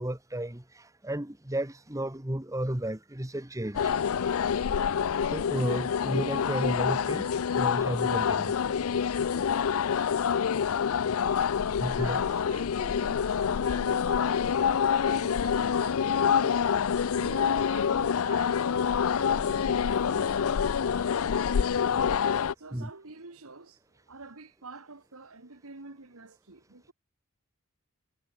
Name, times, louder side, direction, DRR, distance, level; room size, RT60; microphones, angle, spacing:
voice 1, 0.0-3.9 4.2-4.3 5.3-8.6 11.8-12.2 14.9-15.1 22.7-22.9, right 1 dB, 15° right, 1.2 m, -33 dB
sound 1, 3.7-22.5, left 7 dB, 75° left, 0.4 m, -27 dB
voice 2, 11.9-16.7 17.1-22.0 22.6-26.9, right 3 dB, 75° right, 1.9 m, -48 dB
head